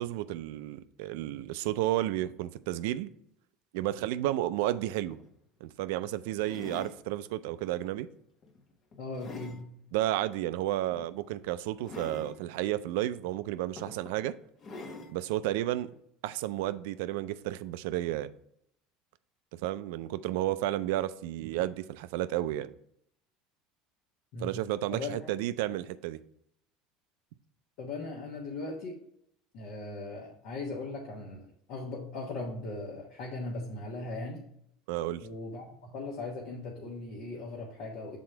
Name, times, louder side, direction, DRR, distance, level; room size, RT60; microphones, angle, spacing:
voice 1, 0.0-3.1 3.7-5.2 5.6-8.1 9.9-14.3 15.1-15.9 16.2-18.3 19.5-22.7 24.4-26.2 34.9-35.3, right 14 dB, 75° right, 0.3 m, -32 dB
sound 1, 5.1-5.3 6.4-7.0 7.6-7.9 8.4-9.6 10.9-11.1 11.8-12.4 13.2-13.3 13.8-14.2 14.6-15.2 15.9-16.0, left 2 dB, 45° left, 0.9 m, -45 dB
voice 2, 9.0-9.7 24.3-24.5 24.9-25.3 27.8-29.0 29.5-34.4 35.2-38.2, left 3 dB, 70° left, 1.1 m, -39 dB
6.1 x 3.7 x 4.4 m
supercardioid pair, 90°, 0 cm